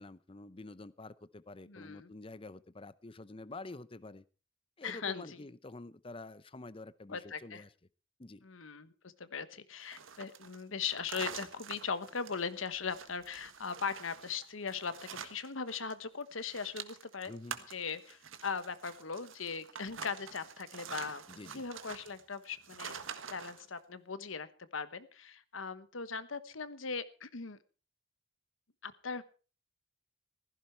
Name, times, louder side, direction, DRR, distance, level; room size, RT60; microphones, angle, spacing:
voice 1, 0.0-4.2 4.8-7.7 8.2-8.4 17.3-17.6 21.3-21.6, left 2 dB, 25° left, 17 dB, 0.7 m, -48 dB
voice 2, 1.7-2.1 4.8-5.4 7.1-7.6 8.4-17.3 17.7-21.2 21.5-23.0 23.3-27.6 28.8-29.2, left 5 dB, 85° left, 13 dB, 1.2 m, -39 dB
sound 1, 9.8-15.9 16.2-23.7, right 7 dB, 85° right, 1.5 m, -47 dB
15.5 x 15.0 x 4.6 m, 0.36 s
head